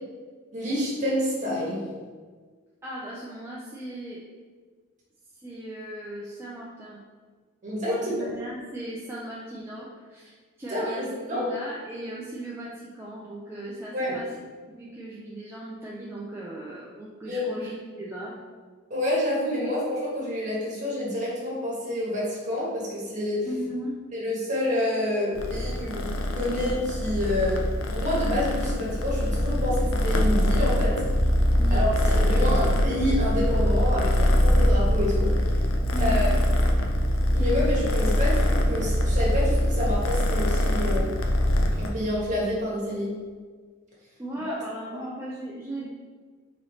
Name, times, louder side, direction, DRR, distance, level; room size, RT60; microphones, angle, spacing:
voice 1, 0.5-1.8 7.6-8.1 10.7-11.5 13.9-14.1 17.3-17.5 18.9-23.5 24.1-26.1 26.3-27.6 27.9-31.0 31.7-35.3 36.0-36.3 37.3-41.1 41.8-43.1 44.9-45.0, left 1 dB, 40° right, -6 dB, 1.3 m, -28 dB
voice 2, 2.8-4.2 5.4-7.0 7.9-14.3 14.7-18.3 23.5-24.0 31.6-32.7 35.9-36.4 44.2-45.9, right 1 dB, 10° right, -5 dB, 0.4 m, -37 dB
Purr, 25.3-41.9, left 1 dB, 80° left, 0.5 m, -23 dB
4.1 x 3.0 x 2.8 m, 1.5 s
head